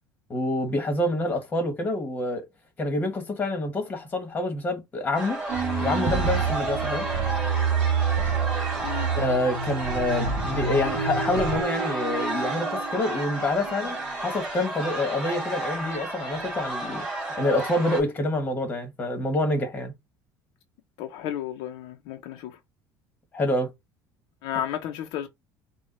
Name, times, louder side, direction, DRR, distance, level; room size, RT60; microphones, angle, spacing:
voice 1, 0.3-2.4 2.8-5.4 5.8-7.1 9.1-17.1 17.4-19.9 23.3-23.7, left 1 dB, 20° left, 1.4 m, -27 dB
sound 1, 5.1-18.0, right 2 dB, 10° right, 2.3 m, -31 dB
sound 2, 5.5-11.6, right 6 dB, 50° right, 1.7 m, -27 dB
voice 2, 8.8-9.1 21.0-22.6 24.4-25.3, left 11 dB, 70° left, 0.7 m, -33 dB
4.7 x 2.4 x 4.2 m
cardioid pair, 165°, 8 cm